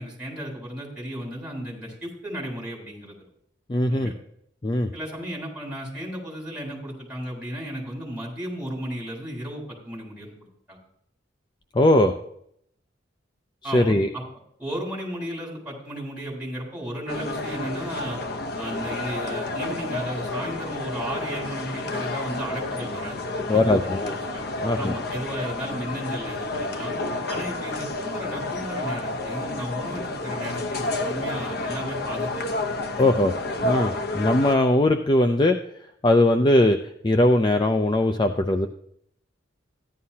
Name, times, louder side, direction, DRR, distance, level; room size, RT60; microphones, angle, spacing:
voice 1, 0.0-3.1 3.9-4.1 4.9-10.3 10.7-10.8 13.6-14.2 14.6-18.2 18.5-23.2 23.5-24.5 24.8-26.9 27.3-32.5 32.8-33.1, equal, 5° right, -3 dB, 3.9 m, -34 dB
voice 2, 3.7-4.1 4.6-4.9 11.7-12.2 13.7-14.1 23.5-24.1 24.6-24.9 33.0-33.4 33.6-35.6 36.0-36.8 37.0-38.7, left 1 dB, 25° left, 6 dB, 0.5 m, -20 dB
sound 1, 17.1-34.6, left 2 dB, 55° left, 0.8 m, -30 dB
14.5 x 11.0 x 2.8 m, 0.70 s
head